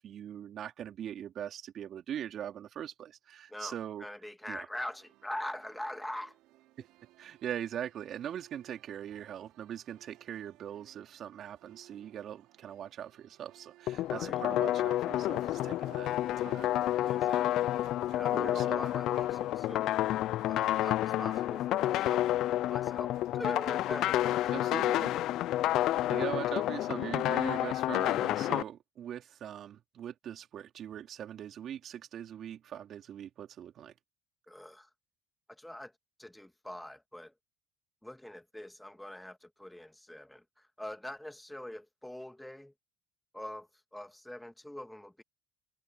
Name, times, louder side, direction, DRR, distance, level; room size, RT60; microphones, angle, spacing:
voice 1, 0.0-4.1 4.5-4.7 6.8-6.9 7.2-16.1 16.4-17.6 18.3-18.8 24.5-25.1 25.8-33.9, right 10 dB, 55° right, 3.0 m, -41 dB
voice 2, 3.5-6.3 14.1-14.4 17.1-17.7 18.1-19.9 20.5-22.3 22.7-25.2 34.5-34.9 35.5-35.9 36.2-37.3 38.0-42.7 43.3-45.2, left 1 dB, 5° left, 2.0 m, -43 dB
sound 1, 4.7-24.1, right 17 dB, 70° right, 3.0 m, -60 dB
sound 2, 13.9-28.6, left 14 dB, 65° left, 0.5 m, -30 dB
hypercardioid pair, 70°, 0 cm